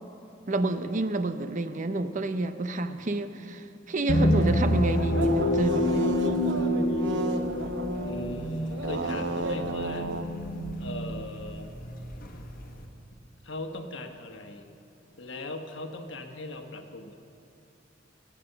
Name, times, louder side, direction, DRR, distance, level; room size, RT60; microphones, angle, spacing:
voice 1, 0.5-6.1, right 2 dB, 40° right, 10 dB, 0.6 m, -29 dB
sound 1, 4.1-12.8, left 1 dB, 50° left, 1.3 m, -28 dB
sound 2, 4.9-10.2, right 2 dB, 75° right, 0.8 m, -32 dB
voice 2, 8.0-10.1 10.8-11.7 13.4-14.7 15.2-17.1, left 2 dB, 80° left, 5 dB, 1.2 m, -39 dB
17.5 x 8.6 x 6.8 m, 2.6 s
head